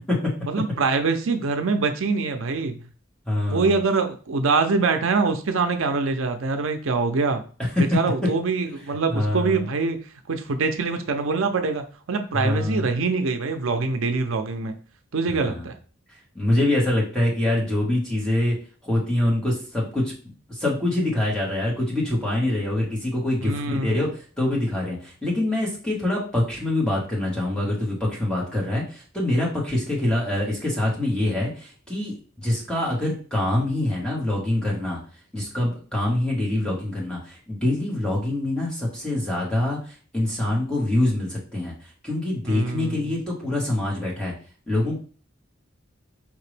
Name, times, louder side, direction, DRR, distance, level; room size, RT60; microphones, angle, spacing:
voice 1, 0.4-2.8 3.5-7.4 7.8-10.0 10.3-14.7 15.1-15.7 23.4-24.0 42.5-43.1, right 4 dB, 80° right, 7 dB, 0.6 m, -24 dB
voice 2, 3.2-3.7 7.6-7.8 9.1-9.6 12.3-12.8 15.3-15.7 16.3-18.5 18.8-20.1 20.5-24.1 24.4-35.0 35.3-44.3 44.7-45.0, left 1 dB, 5° left, -4 dB, 1.5 m, -25 dB
5.1 x 2.9 x 3.3 m, 0.39 s
head